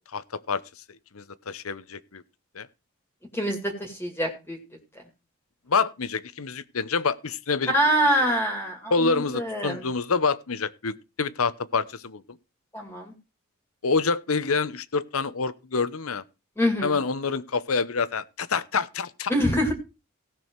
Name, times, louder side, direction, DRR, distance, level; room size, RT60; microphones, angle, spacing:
voice 1, 0.1-0.6 1.1-2.2 2.5-2.7 5.7-7.7 8.2-8.3 8.9-12.2 13.8-16.2 16.8-19.3, left 4 dB, 80° left, 0.9 m, -27 dB
voice 2, 3.3-4.6 7.7-9.8 12.7-13.1 16.6-17.0 19.3-19.7, equal, 10° left, 2.3 m, -25 dB
17.0 x 6.2 x 4.6 m
head